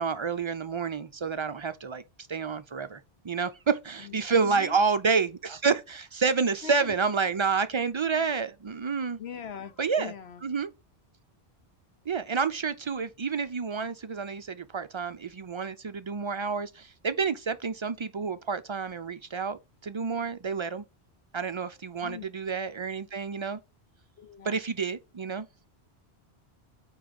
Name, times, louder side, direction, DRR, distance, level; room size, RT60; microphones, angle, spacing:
voice 1, 0.0-2.0 2.3-3.0 3.3-9.2 9.8-10.1 10.4-10.7 12.1-16.7 17.0-19.6 19.8-20.8 21.3-23.6 24.5-25.4, right 5 dB, 50° right, 0.3 m, -29 dB
voice 2, 4.0-4.8 6.6-6.9 9.2-10.4 22.0-22.3 24.2-24.6, left 7 dB, 75° left, 1.2 m, -42 dB
8.6 x 3.1 x 5.2 m
omnidirectional pair, 1.1 m